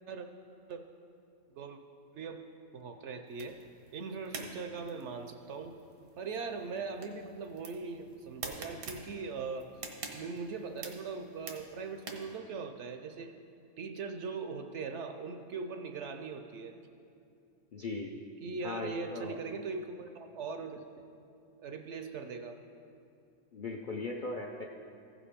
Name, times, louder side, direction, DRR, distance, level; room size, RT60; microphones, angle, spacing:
voice 1, 2.7-3.6 3.9-5.7 6.2-9.7 10.1-13.3 13.8-16.7 18.4-20.8 21.6-22.6, right 4 dB, 65° right, 6 dB, 0.8 m, -40 dB
sound 1, 3.3-12.4, right 4 dB, 85° right, 1.4 m, -48 dB
voice 2, 17.7-18.1 18.5-19.4 23.5-24.6, left 3 dB, 55° left, 0 dB, 0.5 m, -39 dB
15.0 x 5.1 x 5.0 m, 2.5 s
omnidirectional pair, 1.5 m